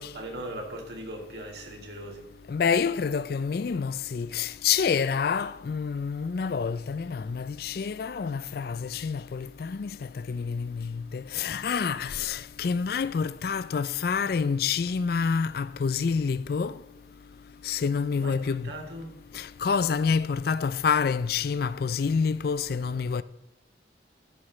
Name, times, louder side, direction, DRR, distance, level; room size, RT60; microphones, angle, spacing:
voice 1, 0.0-2.3 18.1-18.4 18.6-19.2, right 1 dB, 65° right, 2.4 m, -39 dB
voice 2, 2.5-9.9 10.3-16.7 17.6-18.7 19.3-23.2, left 6 dB, 55° left, 0.4 m, -27 dB
13.0 x 11.5 x 3.2 m
head